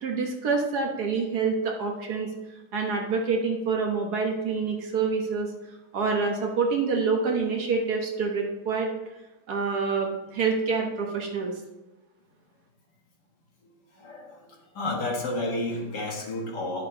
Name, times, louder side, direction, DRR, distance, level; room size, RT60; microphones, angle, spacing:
voice 1, 0.0-2.3 2.7-5.5 5.9-8.9 9.5-11.5, right 4 dB, 60° right, 1 dB, 1.6 m, -27 dB
voice 2, 14.0-14.5 14.7-16.9, left 2 dB, 65° left, -1 dB, 2.1 m, -31 dB
11.0 x 6.8 x 2.9 m, 1.0 s
omnidirectional pair, 2.0 m